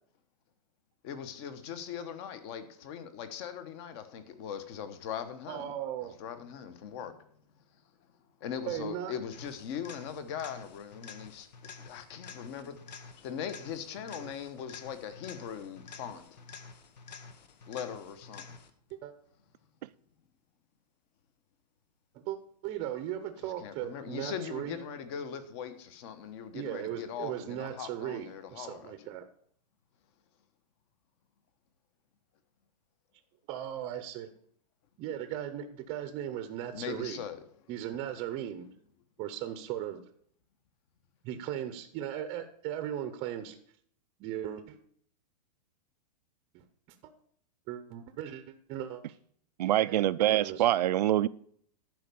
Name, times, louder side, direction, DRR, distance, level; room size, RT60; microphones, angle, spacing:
voice 1, 1.0-5.7 6.0-7.2 8.4-11.5 11.8-16.4 17.7-18.6 23.4-28.9 36.7-37.4, left 8 dB, 40° left, 1.1 m, -40 dB
voice 2, 5.5-6.2 8.7-9.1 18.9-19.1 22.1-24.8 26.5-29.3 33.5-34.3 35.0-37.2 37.7-38.7 39.2-40.0 41.2-43.6 44.2-44.8 46.5-46.6 47.7-49.0 49.8-50.1 50.3-50.6, right 11 dB, 25° right, 0.7 m, -37 dB
sound 1, 9.3-18.9 26.9-27.0, left 5 dB, 90° left, 1.2 m, -49 dB
voice 3, 49.6-51.3, right 13 dB, 75° right, 0.4 m, -25 dB
11.0 x 4.7 x 6.9 m
hypercardioid pair, 155°, 21 cm